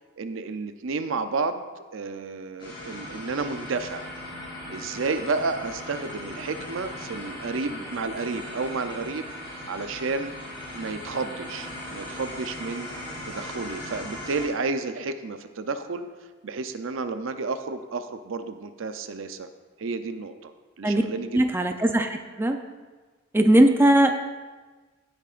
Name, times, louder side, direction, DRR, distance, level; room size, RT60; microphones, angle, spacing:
voice 1, 0.2-1.6 1.9-4.1 4.7-9.3 9.7-10.3 10.7-16.1 16.4-19.5 19.8-20.5 20.8-21.4, right 4 dB, 70° right, 9 dB, 0.6 m, -31 dB
sound 1, 2.6-14.5, left 1 dB, 25° left, 3.3 m, -38 dB
voice 2, 21.3-22.6 23.3-24.1, right 1 dB, 10° right, 5 dB, 0.5 m, -19 dB
15.5 x 8.7 x 2.5 m, 1.3 s
head